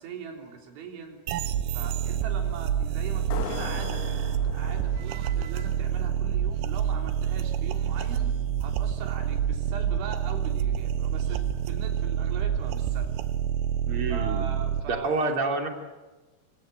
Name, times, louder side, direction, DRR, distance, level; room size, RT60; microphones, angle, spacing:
voice 1, 0.0-1.5 1.7-8.3 8.6-13.1 14.1-15.1, right 5 dB, 75° right, 3 dB, 5.8 m, -41 dB
sound 1, 1.3-14.8, right 9 dB, 90° right, 3.7 m, -28 dB
sound 2, 3.3-6.6, left 9 dB, 80° left, 4.2 m, -40 dB
voice 2, 13.9-14.5 14.9-15.7, right 3 dB, 30° right, 3 dB, 3.3 m, -28 dB
25.5 x 25.0 x 7.9 m, 1.2 s
omnidirectional pair, 5.6 m